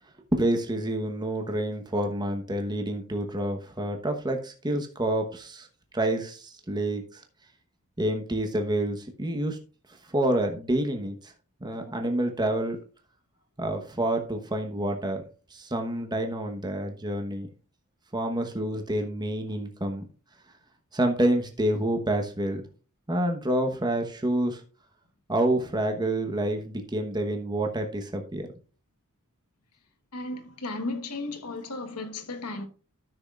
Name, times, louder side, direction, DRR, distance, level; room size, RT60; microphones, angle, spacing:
voice 1, 0.3-5.7 5.9-7.2 8.0-9.6 10.1-11.3 11.6-12.8 13.6-15.2 15.5-17.5 18.1-20.0 20.9-22.6 23.1-24.6 25.3-28.4, right 1 dB, 20° right, 1.1 m, -28 dB
voice 2, 30.1-32.6, left 2 dB, 90° left, 1.3 m, -34 dB
13.5 x 6.2 x 2.4 m
head